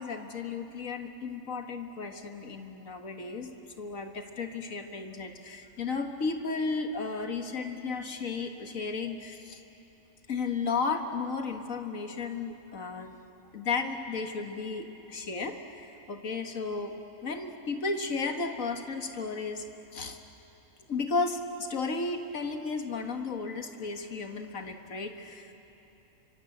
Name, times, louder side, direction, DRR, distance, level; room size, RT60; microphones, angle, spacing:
voice 1, 0.0-3.5 3.8-9.6 10.3-13.2 13.5-16.9 17.2-19.7 19.9-20.2 20.9-25.5, left 4 dB, 75° left, 5 dB, 2.0 m, -34 dB
29.0 x 24.5 x 8.0 m, 3.0 s
omnidirectional pair, 1.4 m